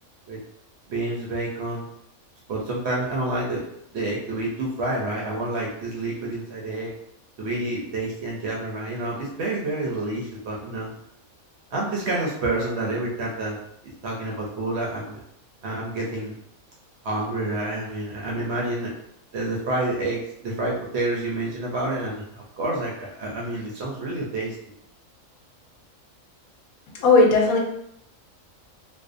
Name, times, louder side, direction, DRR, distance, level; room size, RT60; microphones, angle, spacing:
voice 1, 0.9-1.9 2.5-3.6 3.9-6.9 7.4-10.9 11.7-13.6 14.0-15.2 15.6-16.3 17.0-18.9 19.3-24.5, right 2 dB, 65° right, -3 dB, 0.7 m, -28 dB
voice 2, 27.0-27.6, left 3 dB, 85° left, 1 dB, 1.0 m, -16 dB
2.5 x 2.1 x 2.4 m, 0.74 s
omnidirectional pair, 1.4 m